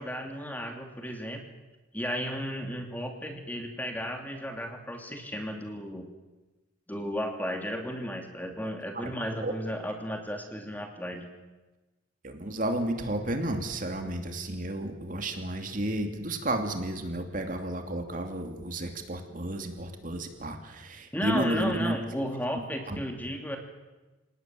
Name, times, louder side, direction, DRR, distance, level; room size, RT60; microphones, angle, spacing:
voice 1, 0.0-1.4 1.9-6.1 6.9-11.3 21.1-23.6, equal, 10° left, 4 dB, 2.8 m, -34 dB
voice 2, 8.6-9.5 12.2-22.0 22.9-23.0, right 1 dB, 40° right, 5 dB, 2.7 m, -32 dB
27.5 x 18.5 x 9.3 m, 1.1 s
head